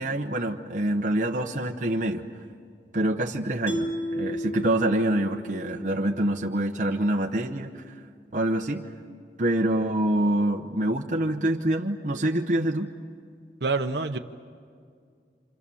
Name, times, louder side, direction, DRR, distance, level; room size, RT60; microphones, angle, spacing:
voice 1, 0.0-2.2 2.9-7.8 8.3-8.9 9.4-12.9, right 1 dB, 45° right, 1 dB, 1.0 m, -26 dB
Mallet percussion, 3.7-6.9, equal, 65° left, 2.6 m, -34 dB
voice 2, 13.6-14.2, right 3 dB, 70° right, 4 dB, 0.9 m, -26 dB
28.5 x 27.0 x 7.1 m, 2.2 s
head